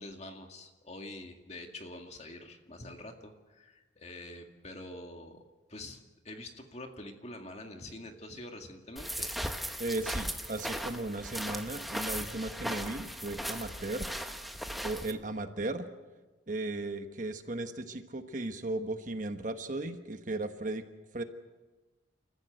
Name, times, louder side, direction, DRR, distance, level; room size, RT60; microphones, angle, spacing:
voice 1, 0.0-5.4 5.7-6.0 6.2-9.4, left 1 dB, 35° left, 4 dB, 2.1 m, -46 dB
sound 1, 9.0-15.1, equal, ahead, 1.1 m, -37 dB
voice 2, 9.8-14.1 14.8-15.9 16.5-20.8 21.1-21.2, right 2 dB, 40° right, 8 dB, 1.2 m, -36 dB
28.5 x 14.5 x 7.9 m, 1.2 s
head